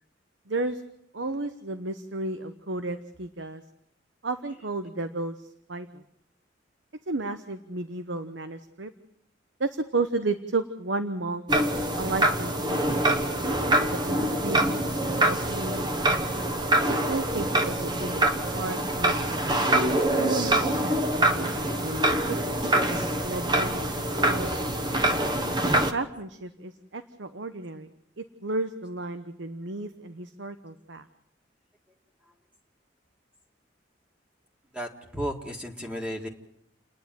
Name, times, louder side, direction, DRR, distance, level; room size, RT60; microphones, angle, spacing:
voice 1, 0.5-0.8 1.1-3.6 4.2-6.0 7.1-8.9 9.6-11.4 12.0-13.0 13.9-15.9 17.1-18.3 18.5-19.6 20.1-21.5 21.8-22.0 22.3-22.6 23.2-24.5 25.9-27.9 28.2-31.1, right 3 dB, 75° right, 10 dB, 1.0 m, -33 dB
sound 1, 11.5-25.9, right 1 dB, 25° right, 1.2 m, -25 dB
voice 2, 34.7-36.3, equal, 5° right, 1 dB, 1.8 m, -34 dB
29.5 x 10.5 x 9.1 m, 0.75 s
head